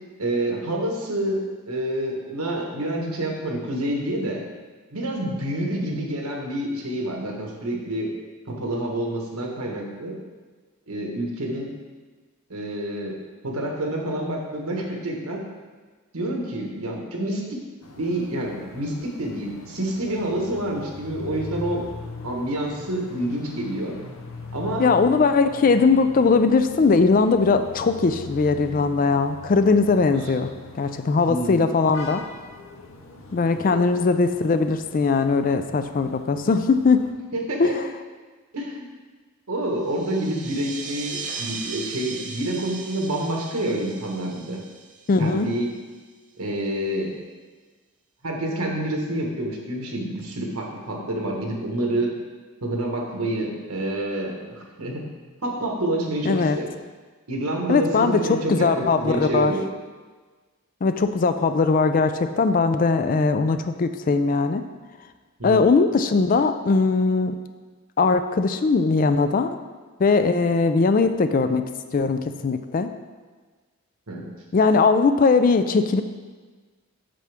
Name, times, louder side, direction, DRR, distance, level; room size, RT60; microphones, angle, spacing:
voice 1, 0.2-1.4 1.7-4.4 4.9-8.1 8.5-10.2 10.9-11.7 12.5-13.2 13.4-15.4 16.1-17.6 18.0-21.8 22.2-23.9 24.5-24.8 30.1-30.5 31.3-31.6 33.7-33.8 37.3-37.7 38.5-38.9 39.5-44.6 45.2-45.7 46.4-47.1 48.2-52.1 52.6-55.1 55.4-56.7 57.3-59.6 65.4-65.6 66.6-66.7 74.1-74.2, right 1 dB, 85° right, 0 dB, 1.4 m, -28 dB
sound 1, 17.8-37.1, left 3 dB, 60° left, 0.7 m, -41 dB
voice 2, 24.8-30.5 30.8-32.2 33.3-37.0 37.6-37.8 45.1-45.5 56.2-56.6 57.7-58.2 58.5-59.5 60.8-64.6 65.4-67.3 68.0-69.5 70.0-71.6 71.9-72.9 74.5-76.0, left 4 dB, 40° left, 9 dB, 0.3 m, -20 dB
sound 2, 39.8-45.9, right 4 dB, 35° right, 0.6 m, -37 dB
7.5 x 6.7 x 3.5 m, 1.4 s
head